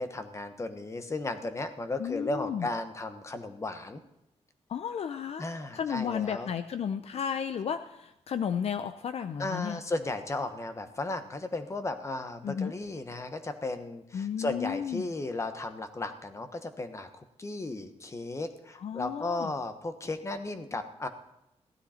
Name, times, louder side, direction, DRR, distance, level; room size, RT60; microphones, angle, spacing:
voice 1, 0.0-4.0 5.4-6.5 9.4-21.1, left 2 dB, 25° left, 8 dB, 1.2 m, -35 dB
voice 2, 2.0-2.7 4.7-5.5 5.7-9.8 12.4-12.7 14.1-15.1 18.8-19.5, left 8 dB, 60° left, 10 dB, 0.6 m, -33 dB
15.5 x 13.0 x 4.4 m, 0.87 s
wide cardioid pair, 145°, 12 cm